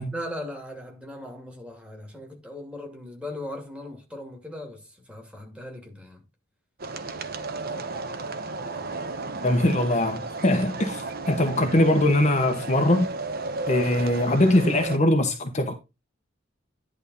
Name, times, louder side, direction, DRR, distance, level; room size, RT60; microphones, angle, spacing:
voice 1, 0.1-6.2, left 1 dB, 5° right, 2.5 m, -38 dB
sound 1, 6.8-15.0, right 3 dB, 50° right, 0.9 m, -34 dB
voice 2, 9.4-13.1 13.7-15.7, left 1 dB, 35° left, 1.1 m, -22 dB
11.0 x 3.6 x 5.4 m
head